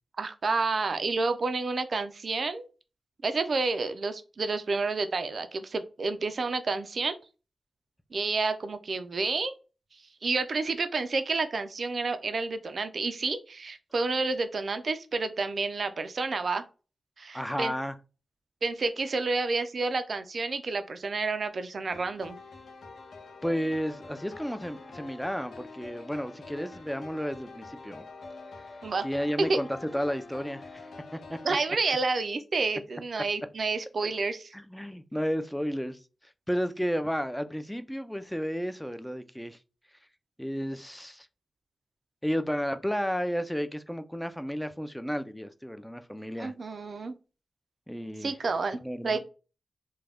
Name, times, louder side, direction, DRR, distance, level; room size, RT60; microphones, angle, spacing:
voice 1, 0.2-2.7 3.2-7.2 8.1-9.6 10.2-16.6 17.2-17.7 18.6-22.4 28.8-29.1 29.5-29.6 31.4-34.5 46.4-47.2 48.2-49.2, right 3 dB, 65° right, 0.3 m, -30 dB
voice 2, 17.3-18.0 23.4-28.1 29.0-29.7 29.9-31.4 34.5-36.0 36.5-39.6 40.4-41.3 42.2-46.5 47.9-48.3 48.7-49.2, equal, 5° left, 0.4 m, -32 dB
sound 1, 21.9-31.5, left 3 dB, 85° left, 0.6 m, -46 dB
2.4 x 2.1 x 3.3 m
cardioid pair, 40°, 0 cm